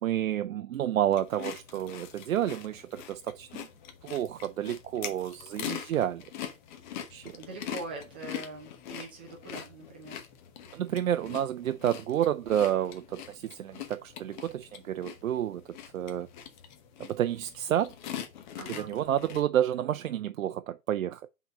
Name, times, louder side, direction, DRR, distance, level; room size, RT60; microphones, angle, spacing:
voice 1, 0.0-3.7 4.0-6.2 7.1-7.3 10.7-15.6 15.9-16.3 17.0-17.9 18.8-21.2, right 11 dB, 75° right, 0.5 m, -30 dB
sound 1, 1.1-19.4, left 9 dB, 35° left, 0.9 m, -43 dB
voice 2, 7.3-10.2 18.5-18.9, right 3 dB, 10° right, 0.3 m, -42 dB
5.1 x 3.9 x 5.2 m
hypercardioid pair, 130°, 40 cm